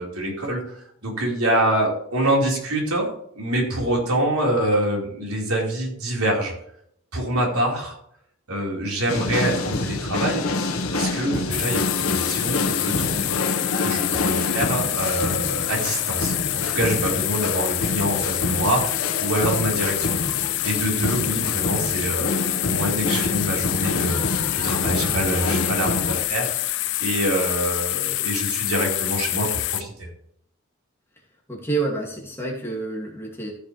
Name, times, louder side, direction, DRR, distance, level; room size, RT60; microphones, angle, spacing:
voice 1, 0.0-3.1 3.4-6.5 7.1-8.0 8.5-10.5 10.9-13.4 13.8-26.7 27.0-30.1, right 1 dB, 85° right, -2 dB, 4.5 m, -25 dB
sound 1, 9.1-26.2, left 2 dB, 85° left, 1.5 m, -27 dB
sound 2, 11.5-29.8, left 17 dB, 55° left, 0.4 m, -26 dB
voice 2, 31.5-33.5, right 3 dB, 10° left, -2 dB, 2.4 m, -28 dB
14.5 x 7.2 x 3.3 m, 0.69 s
head